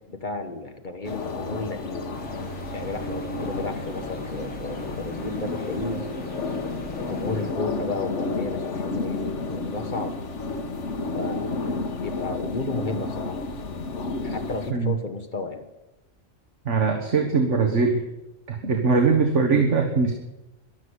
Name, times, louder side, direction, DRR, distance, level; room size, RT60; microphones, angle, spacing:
voice 1, 0.1-2.1 2.7-6.0 7.0-10.1 11.1-13.4 14.2-15.6, left 3 dB, 40° left, 7 dB, 1.5 m, -33 dB
sound 1, 1.0-14.7, left 3 dB, 75° left, 1.6 m, -31 dB
sound 2, 2.1-7.5, equal, 10° left, 1.9 m, -40 dB
voice 2, 16.7-18.0 18.5-20.1, right 4 dB, 75° right, 3 dB, 1.8 m, -21 dB
13.0 x 11.5 x 8.1 m, 0.96 s
omnidirectional pair, 1.2 m